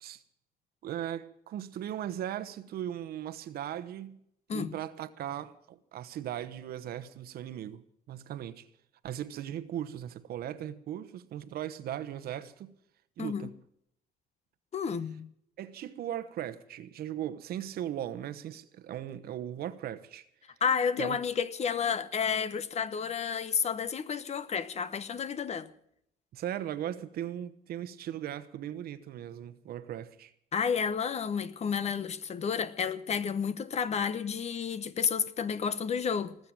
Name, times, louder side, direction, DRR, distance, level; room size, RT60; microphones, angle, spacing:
voice 1, 0.8-4.2 4.5-8.7 9.0-12.8 13.2-13.5 15.6-20.3 21.0-21.2 26.3-30.3, right 11 dB, 65° right, 1.1 m, -38 dB
voice 2, 13.2-13.5 14.7-15.3 20.6-25.7 30.5-36.4, left 6 dB, 40° left, 1.0 m, -31 dB
19.0 x 7.8 x 8.8 m
cardioid pair, 110°, 17 cm